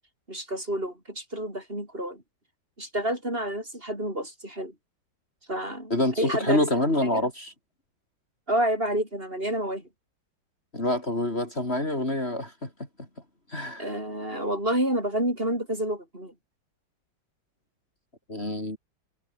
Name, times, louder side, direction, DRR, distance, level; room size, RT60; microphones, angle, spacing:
voice 1, 0.3-2.2 2.8-4.7 5.5-6.7 7.1-7.2 8.5-9.8 13.8-16.3, right 1 dB, 30° right, 8.3 m, -29 dB
voice 2, 5.9-7.5 10.7-12.7 13.5-13.9 18.3-18.8, left 1 dB, 30° left, 5.0 m, -26 dB
omnidirectional pair, 2.1 m